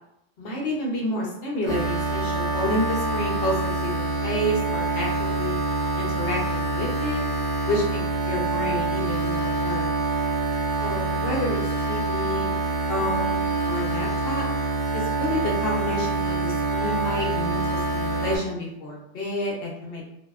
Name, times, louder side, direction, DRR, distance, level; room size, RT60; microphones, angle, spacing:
voice 1, 0.4-5.5 6.0-7.2 7.7-8.0 8.3-9.9 10.8-11.6 11.9-12.5 12.9-14.4 14.9-20.0, left 1 dB, 60° left, -2 dB, 0.7 m, -29 dB
sound 1, 1.7-18.4, right 3 dB, 60° right, 1.1 m, -26 dB
2.6 x 2.1 x 2.3 m, 0.79 s
omnidirectional pair, 1.2 m